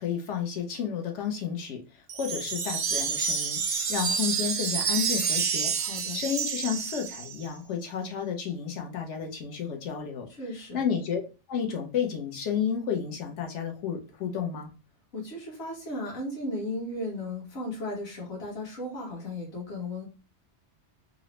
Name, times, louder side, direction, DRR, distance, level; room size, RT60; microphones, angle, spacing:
voice 1, 0.0-5.7 6.1-10.3 10.7-11.2 11.5-14.7, left 7 dB, 80° left, 3 dB, 1.1 m, -31 dB
Wind chime, 2.1-7.5, right 6 dB, 60° right, 0.5 m, -29 dB
voice 2, 5.8-6.2 10.4-10.8 15.1-20.0, left 1 dB, 60° left, -3 dB, 1.3 m, -35 dB
3.8 x 2.0 x 2.9 m, 0.32 s
omnidirectional pair, 1.2 m